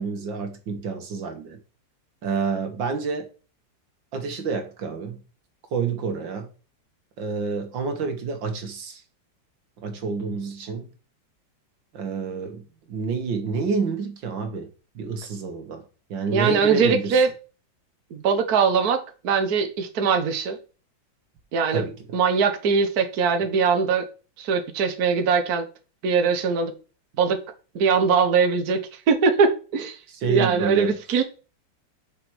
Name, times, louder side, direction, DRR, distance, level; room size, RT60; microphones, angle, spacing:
voice 1, 0.0-1.6 2.2-3.3 4.1-5.2 5.7-6.5 7.2-9.0 9.8-10.8 11.9-14.7 15.0-15.8 16.1-17.2 21.7-21.9 30.1-31.0, right 5 dB, 90° right, 2.2 m, -28 dB
voice 2, 16.3-17.3 18.1-20.6 21.5-21.8 22.1-24.0 24.4-25.7 26.0-26.7 27.2-27.4 27.7-28.8 29.1-30.0 30.3-31.2, right 5 dB, 60° right, 1.5 m, -21 dB
6.0 x 5.3 x 6.2 m
omnidirectional pair, 2.0 m